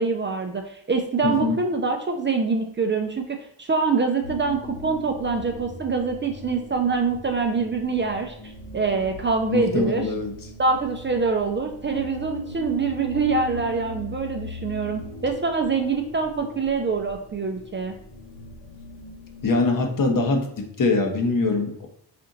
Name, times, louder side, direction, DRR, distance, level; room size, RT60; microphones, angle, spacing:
voice 1, 0.0-10.0 10.6-18.0, right 4 dB, 25° right, 4 dB, 0.5 m, -25 dB
voice 2, 1.2-1.6 9.5-10.3 19.4-21.9, left 3 dB, 45° left, 3 dB, 1.0 m, -23 dB
sound 1, 4.2-19.5, left 1 dB, 75° left, 1.2 m, -40 dB
4.4 x 2.5 x 3.8 m, 0.69 s
supercardioid pair, 65°, 45 cm